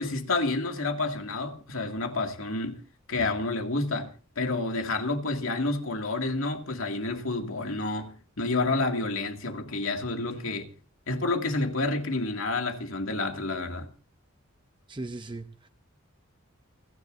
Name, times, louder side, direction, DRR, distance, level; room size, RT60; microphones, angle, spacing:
voice 1, 0.0-2.8 3.1-4.1 4.4-10.7 11.1-13.9, left 2 dB, 80° left, 2.3 m, -29 dB
voice 2, 14.9-15.7, right 2 dB, 25° right, 0.7 m, -38 dB
29.0 x 11.0 x 2.6 m
head